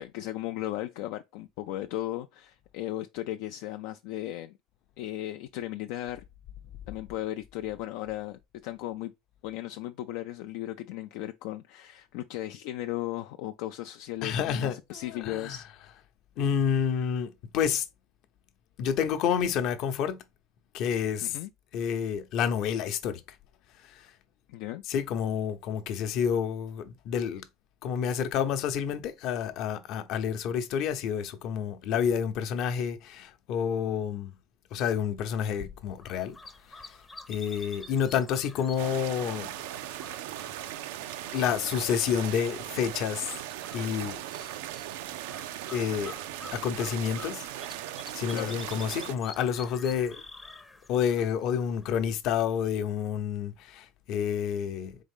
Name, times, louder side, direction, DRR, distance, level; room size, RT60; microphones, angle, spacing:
voice 1, 0.0-4.5 5.0-6.2 6.9-9.1 9.4-15.6 21.2-21.5 24.5-24.8 48.3-48.6, left 14 dB, 75° left, 0.3 m, -36 dB
voice 2, 14.2-15.6 16.4-17.9 18.8-20.2 20.7-21.4 21.7-23.2 23.8-24.1 24.8-27.5 27.8-34.3 34.7-36.4 36.7-37.0 37.3-39.5 41.3-43.4 43.7-44.2 45.7-46.1 46.5-47.5 47.7-50.2 50.9-55.0, left 8 dB, 55° left, 0.7 m, -29 dB
sound 1, 36.0-52.1, left 3 dB, 10° left, 0.6 m, -49 dB
sound 2, 38.8-49.2, right 13 dB, 90° right, 0.4 m, -38 dB
4.0 x 3.6 x 3.6 m
cardioid pair, 135°, 0 cm